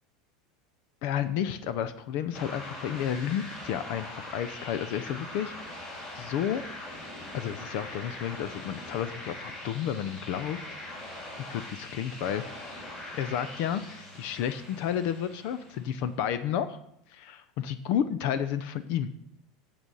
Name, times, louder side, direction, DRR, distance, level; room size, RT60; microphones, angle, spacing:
voice 1, 1.0-5.5 6.2-6.6 7.3-10.6 11.5-12.4 13.1-16.8 17.1-19.1, left 9 dB, 60° left, 13 dB, 0.6 m, -31 dB
sound 1, 2.3-16.0, left 1 dB, 35° left, 4.3 m, -42 dB
8.7 x 6.8 x 5.5 m, 0.75 s
supercardioid pair, 120°, 3 cm